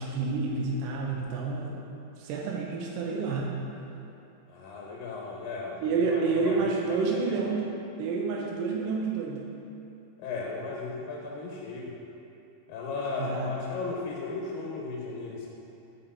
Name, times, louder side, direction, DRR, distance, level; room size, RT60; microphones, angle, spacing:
voice 1, 0.0-1.8 2.2-3.5 5.8-7.7 8.0-9.5 13.2-13.5, right 4 dB, 80° right, -2 dB, 2.3 m, -29 dB
voice 2, 4.5-7.4 10.2-11.9 12.7-15.5, left 3 dB, 90° left, -2 dB, 2.5 m, -36 dB
8.8 x 4.7 x 4.3 m, 2.8 s
omnidirectional pair, 3.9 m